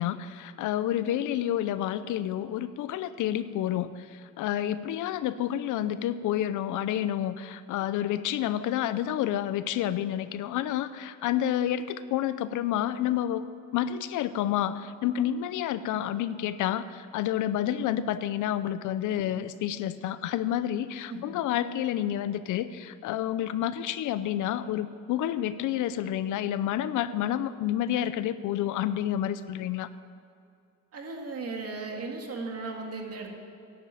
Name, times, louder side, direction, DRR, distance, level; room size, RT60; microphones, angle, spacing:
voice 1, 0.0-4.1 4.4-13.5 13.7-29.9, left 11 dB, 85° left, 14 dB, 0.6 m, -29 dB
voice 2, 30.9-33.4, right 3 dB, 55° right, 2 dB, 2.2 m, -36 dB
11.0 x 8.8 x 7.6 m, 2.5 s
cardioid pair, 90°, 30 cm